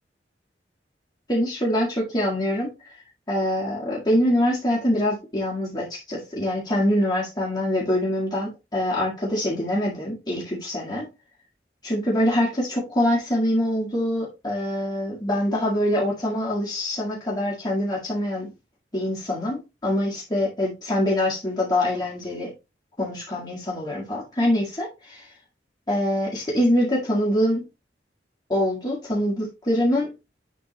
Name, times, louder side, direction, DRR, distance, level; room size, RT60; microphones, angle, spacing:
voice 1, 1.3-2.7 3.3-11.1 11.8-18.5 18.9-22.5 23.0-25.3 25.9-27.7 28.5-30.1, left 1 dB, 25° left, 1.8 m, -24 dB
9.9 x 3.6 x 2.9 m
head